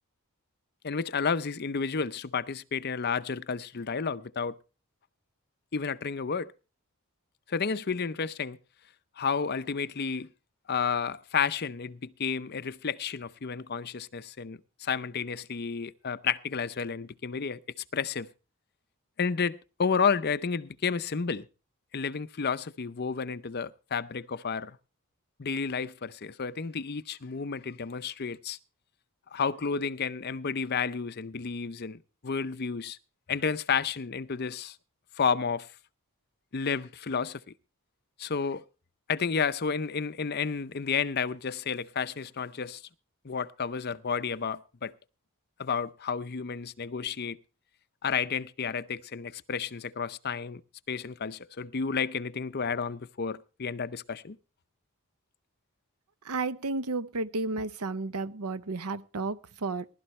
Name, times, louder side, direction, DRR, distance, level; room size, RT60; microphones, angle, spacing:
voice 1, 0.8-4.6 5.7-6.5 7.5-8.6 9.2-10.3 10.7-17.6 17.9-18.3 19.2-21.5 21.9-24.8 25.4-28.6 29.3-33.0 33.3-34.8 35.2-35.7 36.5-37.4 38.2-38.6 39.1-42.8 43.2-44.9 45.6-47.4 48.0-50.6 50.9-54.4, left 6 dB, 45° left, 0.6 m, -31 dB
voice 2, 56.2-59.9, right 3 dB, 90° right, 0.8 m, -32 dB
20.0 x 12.0 x 3.2 m
head